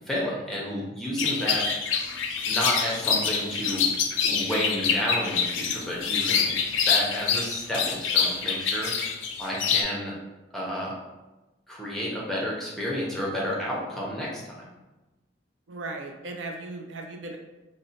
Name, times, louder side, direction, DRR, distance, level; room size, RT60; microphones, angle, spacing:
voice 1, 0.1-1.7 2.5-3.9 4.2-6.6 6.9-10.2 10.5-11.0 11.7-14.7, equal, ahead, -5 dB, 0.6 m, -31 dB
sound 1, 1.2-9.8, left 6 dB, 80° left, 0.4 m, -26 dB
voice 2, 15.7-17.4, right 2 dB, 70° right, 2 dB, 0.4 m, -37 dB
4.0 x 2.1 x 2.7 m, 1.1 s
head